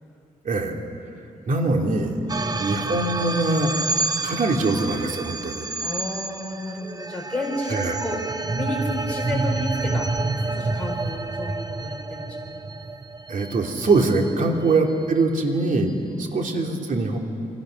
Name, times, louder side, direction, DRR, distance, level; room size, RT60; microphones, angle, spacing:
voice 1, 0.4-0.7 1.5-2.2 2.6-3.7 4.2-5.7 7.7-8.0 13.3-15.9 16.2-17.2, right 3 dB, 60° right, 2 dB, 2.8 m, -23 dB
voice 2, 2.2-2.6 5.8-8.2 8.5-12.6 14.4-14.5 16.1-16.3, left 1 dB, 10° left, -2 dB, 4.8 m, -32 dB
sound 1, 2.3-14.7, right 3 dB, 25° right, 0.7 m, -29 dB
28.0 x 24.5 x 6.5 m, 2.6 s
wide cardioid pair, 135°, 15 cm